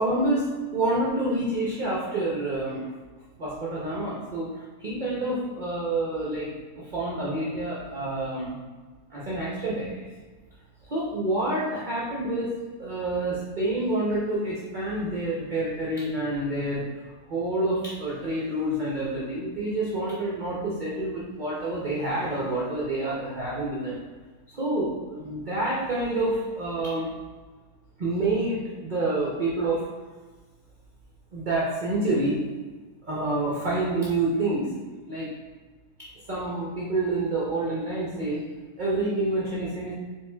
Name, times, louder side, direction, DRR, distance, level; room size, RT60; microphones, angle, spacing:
voice 1, 0.0-2.9 3.4-6.5 6.8-8.6 9.1-10.1 10.8-12.5 12.8-16.8 17.3-24.0 24.5-27.1 28.0-29.8 31.3-32.4 33.0-34.7 35.1-35.3 36.3-38.4 38.8-39.9, right 2 dB, 50° right, -6 dB, 0.6 m, -28 dB
4.5 x 3.1 x 2.2 m, 1.3 s
omnidirectional pair, 1.6 m